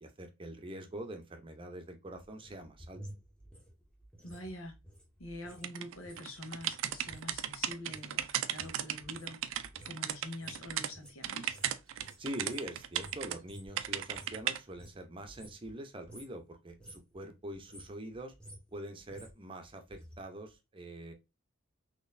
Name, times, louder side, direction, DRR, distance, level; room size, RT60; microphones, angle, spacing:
voice 1, 0.0-3.0 12.2-18.3 18.7-21.1, right 1 dB, 25° right, 0.7 m, -44 dB
sound 1, 2.2-5.7 5.9-14.4 14.7-15.8 16.0-16.4 16.7-17.1 17.5-20.2 20.5-20.6, right 1 dB, 5° left, 0.8 m, -53 dB
voice 2, 4.2-4.7 5.2-9.5 9.8-11.5, left 1 dB, 90° left, 1.3 m, -45 dB
sound 2, 5.6-10.9 11.2-13.4 13.8-14.6, right 11 dB, 70° right, 0.4 m, -36 dB
3.9 x 3.0 x 2.5 m
head